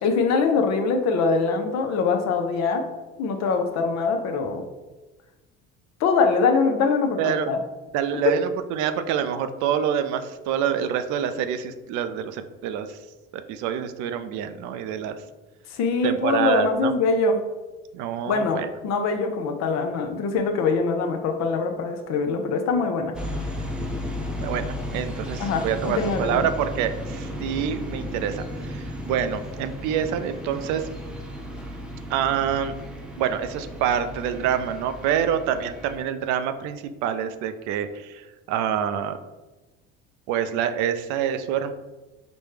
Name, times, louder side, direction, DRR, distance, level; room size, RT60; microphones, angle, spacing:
voice 1, 0.0-2.9 3.2-4.6 6.0-7.6 8.3-8.4 15.7-17.4 18.3-23.2 25.4-26.5, left 4 dB, 60° left, 6 dB, 0.6 m, -23 dB
voice 2, 7.2-7.5 7.9-13.0 13.3-15.2 16.0-16.9 17.9-18.7 24.4-30.9 32.1-32.7 33.2-39.2 40.3-41.7, right 9 dB, 70° right, 10 dB, 0.5 m, -26 dB
sound 1, 23.1-36.0, left 1 dB, 5° right, 0.6 m, -34 dB
5.1 x 2.2 x 3.2 m, 1.1 s
supercardioid pair, 90°, 30 cm